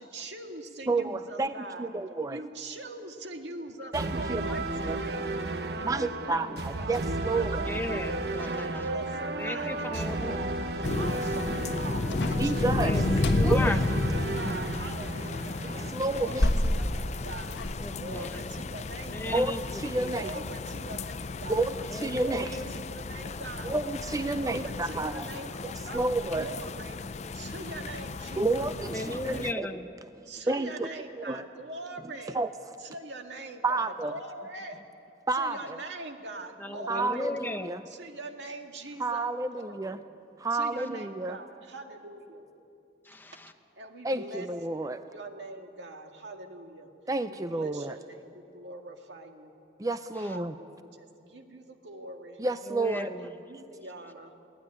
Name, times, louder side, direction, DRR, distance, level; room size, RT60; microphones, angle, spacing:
voice 1, 0.0-1.9 2.3-5.4 5.8-7.0 7.3-7.9 8.8-10.6 10.9-13.0 13.3-15.6 16.0-17.6 17.9-19.6 20.0-21.7 22.1-23.8 24.3-26.0 26.4-27.0 27.3-29.4 30.3-32.4 32.8-34.8 35.3-37.3 37.9-40.0 40.5-42.4 43.8-44.5 45.1-46.9 47.3-49.5 50.2-52.4 52.9-54.3, right 2 dB, 90° right, 4 dB, 2.0 m, -43 dB
voice 2, 0.9-2.4 3.9-4.6 4.8-5.0 5.8-7.7 12.4-13.0 13.4-13.7 15.7-16.5 19.3-20.4 21.5-22.5 23.6-25.3 25.6-26.5 28.4-29.7 30.5-30.9 31.2-31.4 32.3-32.5 33.6-34.1 35.3-35.8 36.9-37.8 39.0-40.0 40.4-41.4 44.0-45.0 47.1-48.0 49.8-50.6 52.4-53.1, right 2 dB, 20° right, 10 dB, 0.5 m, -30 dB
sound 1, 3.9-15.9, right 2 dB, 65° right, 1.2 m, -33 dB
voice 3, 7.6-8.9 9.4-10.4 12.8-13.0 13.3-13.8 15.8-16.3 17.8-18.6 19.1-20.1 21.9-22.7 24.3-24.5 28.8-29.9 36.6-37.8 43.0-43.5 50.2-50.4 52.7-53.4, left 1 dB, 10° left, 7 dB, 0.8 m, -37 dB
sound 2, 10.8-29.5, left 3 dB, 40° left, 0.5 m, -33 dB
sound 3, 12.1-13.6 16.1-17.7, left 1 dB, 75° left, 1.3 m, -29 dB
21.5 x 17.5 x 10.0 m, 2.7 s
head